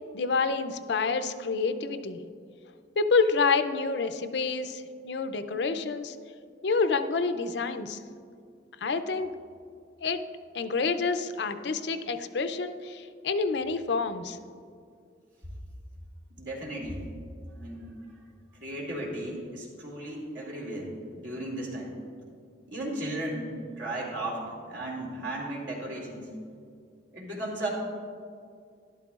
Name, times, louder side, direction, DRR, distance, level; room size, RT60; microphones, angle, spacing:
voice 1, 0.1-2.2 3.0-6.2 6.6-8.0 8.8-9.3 10.0-10.2 10.5-14.4, left 4 dB, 70° left, 10 dB, 0.5 m, -28 dB
voice 2, 16.3-17.1 17.5-18.2 18.5-20.9 21.2-21.9 22.7-26.3 27.1-27.7, right 1 dB, 80° right, -3 dB, 2.5 m, -35 dB
12.5 x 11.5 x 2.4 m, 2.3 s
head